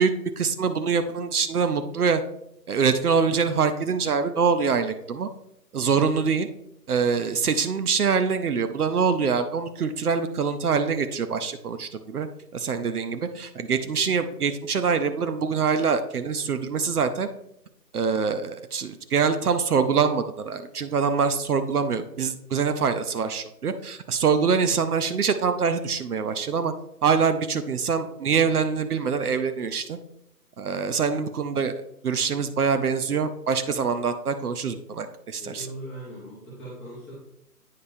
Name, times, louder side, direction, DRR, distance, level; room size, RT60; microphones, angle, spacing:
voice 1, 0.0-2.2 2.7-5.3 5.7-6.5 6.9-12.3 12.5-17.3 17.9-26.7 27.0-30.0 30.6-31.7 32.0-35.7, right 5 dB, 65° right, 9 dB, 0.7 m, -24 dB
voice 2, 35.4-37.1, right 1 dB, 5° left, -9 dB, 0.9 m, -40 dB
8.6 x 5.2 x 2.6 m, 0.78 s
figure-of-eight pair, 145°, 48 cm